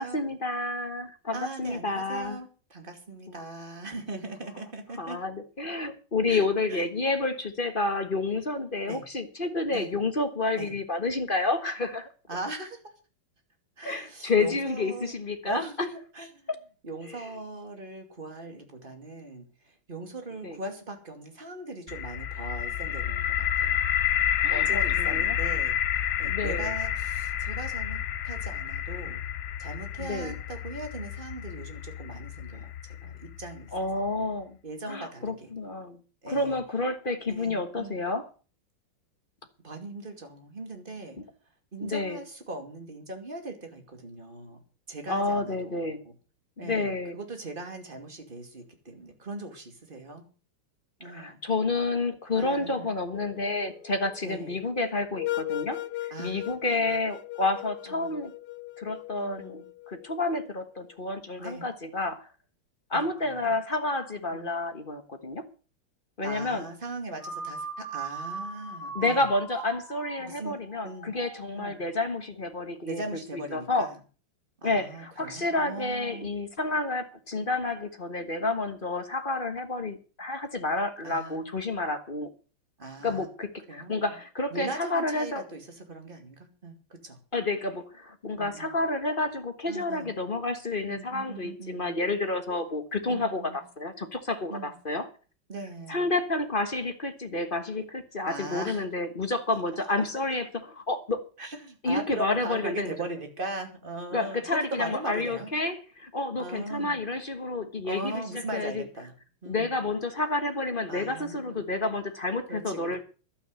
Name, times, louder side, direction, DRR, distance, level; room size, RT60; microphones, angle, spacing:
voice 1, 0.0-2.4 3.3-3.4 5.0-12.1 13.8-15.6 16.5-16.6 17.0-17.3 20.4-20.6 24.4-25.4 26.2-26.7 30.0-30.3 33.7-34.6 34.9-36.0 36.3-38.3 41.2-41.3 41.8-42.2 45.1-46.0 46.6-47.2 51.0-55.8 56.0-58.3 58.8-59.6 59.9-62.3 62.9-65.4 66.2-66.6 68.9-73.0 73.5-73.9 74.6-82.3 83.0-85.4 87.3-95.1 95.9-101.2 101.8-102.9 104.1-108.9 109.4-113.0, left 2 dB, 30° left, 8 dB, 1.2 m, -30 dB
voice 2, 1.3-5.2 6.3-6.8 8.9-9.0 9.7-9.9 10.6-10.7 12.3-12.8 13.8-15.1 15.4-15.9 16.1-16.5 16.8-23.8 24.5-25.7 26.2-29.2 29.6-33.7 34.6-35.5 36.2-36.6 37.3-38.0 39.6-41.2 41.7-44.6 44.9-46.1 46.6-50.2 51.0-51.4 52.3-52.9 54.2-54.5 56.1-56.9 57.9-58.1 59.1-59.6 61.4-61.6 62.9-63.0 63.4-63.6 64.3-64.5 66.2-69.3 70.2-71.1 71.5-71.8 72.8-74.0 74.6-76.3 81.0-81.4 82.8-83.3 83.7-84.1 84.5-87.2 88.4-88.8 89.7-90.1 90.9-92.0 93.1-93.6 94.5-94.7 95.5-96.0 98.3-98.8 101.4-105.5 106.4-107.0 107.8-109.1 109.4-109.9 110.9-111.6 112.5-113.0, right 2 dB, 25° right, 5 dB, 2.5 m, -39 dB
sound 1, 21.9-33.7, left 10 dB, 65° left, 1.1 m, -29 dB
sound 2, 53.1-60.5, left 15 dB, 90° left, 1.8 m, -38 dB
sound 3, 67.2-71.7, right 4 dB, 85° right, 5.5 m, -39 dB
12.0 x 9.0 x 7.9 m, 0.37 s
omnidirectional pair, 2.4 m